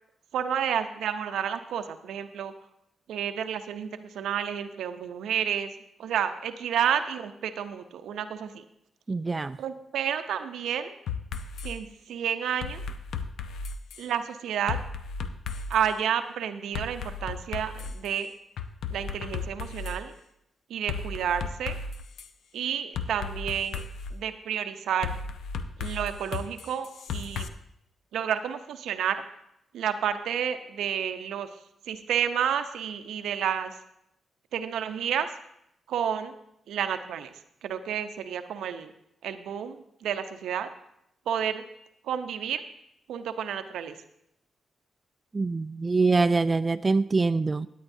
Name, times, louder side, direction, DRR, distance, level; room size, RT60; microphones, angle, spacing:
voice 1, 0.3-2.5 3.1-5.7 6.0-8.6 9.6-10.9 11.6-12.8 14.0-14.8 15.7-18.3 18.9-20.1 20.7-21.8 22.5-23.8 24.1-25.1 25.8-27.5 28.1-29.2 29.7-31.5 31.9-33.7 34.5-35.3 35.9-36.3 36.7-37.3 37.6-38.9 39.2-40.7 41.3-41.6 42.0-42.6 43.1-44.0, right 8 dB, 80° right, 9 dB, 0.7 m, -30 dB
voice 2, 9.1-9.6 45.3-47.7, right 3 dB, 35° right, 9 dB, 0.4 m, -24 dB
sound 1, 11.1-11.7 12.6-14.1 14.7-15.9 16.7-18.1 18.6-20.0 20.9-22.3 23.0-24.1 25.0-27.5, left 5 dB, 75° left, 0.6 m, -35 dB
16.5 x 9.4 x 2.7 m, 0.78 s
supercardioid pair, 50°, 0 cm